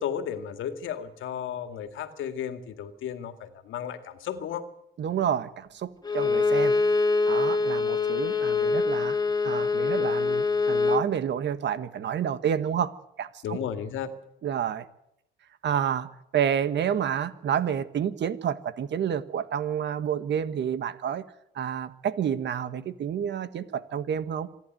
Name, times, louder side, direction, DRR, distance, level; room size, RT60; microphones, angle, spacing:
voice 1, 0.0-4.7 13.4-14.1, left 8 dB, 80° left, 9 dB, 2.1 m, -34 dB
voice 2, 5.0-6.8 7.3-9.2 9.4-12.9 13.2-13.6 14.4-14.8 15.6-21.2 21.5-24.5, right 8 dB, 65° right, 13 dB, 1.5 m, -29 dB
Bowed string instrument, 6.0-11.1, left 4 dB, 20° left, 1.5 m, -24 dB
26.5 x 11.0 x 9.2 m, 0.80 s
cardioid pair, 90°, 20 cm